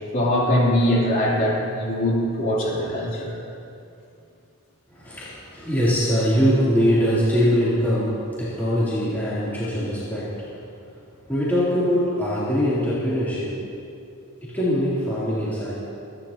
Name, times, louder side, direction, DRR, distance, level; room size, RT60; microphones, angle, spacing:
voice 1, 0.1-3.4, equal, 40° left, -5 dB, 3.4 m, -22 dB
voice 2, 4.9-10.6 11.2-13.6 14.4-15.8, equal, 10° left, -12 dB, 3.2 m, -22 dB
26.5 x 10.5 x 2.9 m, 2.5 s
head